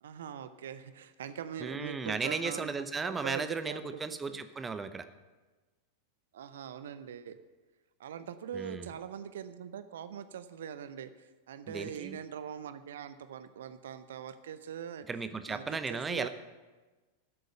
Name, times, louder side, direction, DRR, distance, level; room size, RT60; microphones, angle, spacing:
voice 1, 0.0-4.4 6.3-7.4 8.0-15.1 15.5-16.3, right 8 dB, 60° right, 12 dB, 0.6 m, -42 dB
voice 2, 1.6-5.0 8.5-8.9 11.7-12.2 15.1-16.3, right 4 dB, 15° right, 11 dB, 0.7 m, -35 dB
13.5 x 7.9 x 6.5 m, 1.2 s
figure-of-eight pair, 90°, 0 cm